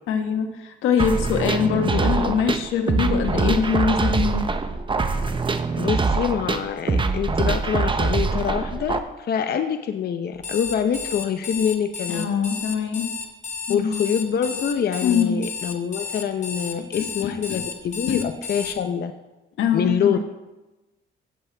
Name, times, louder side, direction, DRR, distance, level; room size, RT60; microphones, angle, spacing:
voice 1, 0.1-4.5 12.1-13.1 13.7-14.0 15.0-15.4 16.8-17.6 18.1-18.3 19.6-20.2, left 6 dB, 85° left, 5 dB, 1.2 m, -23 dB
sound 1, 1.0-9.0, right 4 dB, 25° right, 0.8 m, -23 dB
voice 2, 5.8-12.3 13.7-19.1 19.7-20.2, left 8 dB, 55° left, 7 dB, 0.7 m, -25 dB
Alarm, 10.3-18.8, left 5 dB, 35° left, 1.7 m, -33 dB
16.0 x 7.3 x 3.4 m, 1.1 s
cardioid pair, 90°, 20 cm